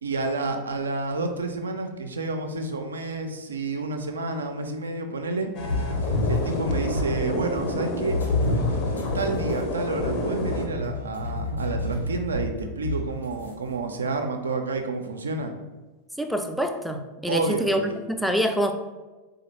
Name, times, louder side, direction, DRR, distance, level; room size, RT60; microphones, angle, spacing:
voice 1, 0.0-5.5 6.3-8.2 9.1-15.5 17.3-17.9, right 3 dB, 70° right, 6 dB, 0.4 m, -29 dB
sound 1, 5.5-10.7, left 1 dB, 45° left, 0.6 m, -30 dB
sound 2, 5.6-7.3 8.1-13.5, left 2 dB, 80° left, 0.8 m, -28 dB
voice 2, 16.2-18.7, equal, ahead, 5 dB, 0.3 m, -26 dB
4.1 x 2.3 x 3.1 m, 1.2 s
figure-of-eight pair, 90°, 0 cm